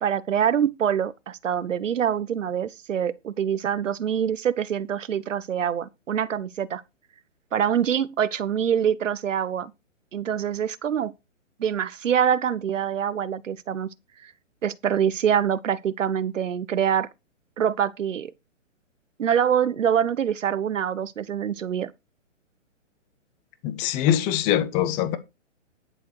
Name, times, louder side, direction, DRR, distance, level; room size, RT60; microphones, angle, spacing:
voice 1, 0.0-6.8 7.5-9.7 10.1-11.1 11.6-13.9 14.2-14.3 14.6-17.1 17.6-18.3 19.2-21.9, right 8 dB, 75° right, 1.1 m, -25 dB
voice 2, 23.6-25.2, left 11 dB, 20° left, 0.9 m, -23 dB
11.0 x 7.1 x 4.8 m
hypercardioid pair, 145°, 38 cm